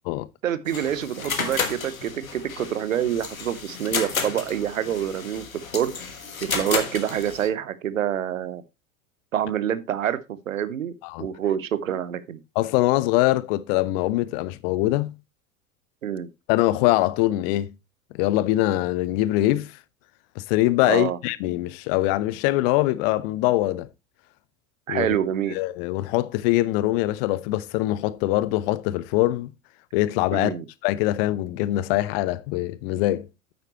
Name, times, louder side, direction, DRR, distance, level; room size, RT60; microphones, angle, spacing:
voice 1, 0.4-5.5 5.7-5.9 6.5-8.6 9.3-12.4 16.0-16.3 20.9-21.2 24.9-25.6 30.3-30.7, right 10 dB, 70° right, 0.9 m, -27 dB
sound 1, 0.7-7.5, left 5 dB, 80° left, 1.5 m, -32 dB
voice 2, 12.6-15.2 16.5-17.7 18.1-19.7 20.4-23.9 24.9-25.1 25.5-29.5 29.9-30.6 30.8-33.3, left 16 dB, 45° left, 0.7 m, -23 dB
9.6 x 8.1 x 2.9 m
figure-of-eight pair, 80°, 41 cm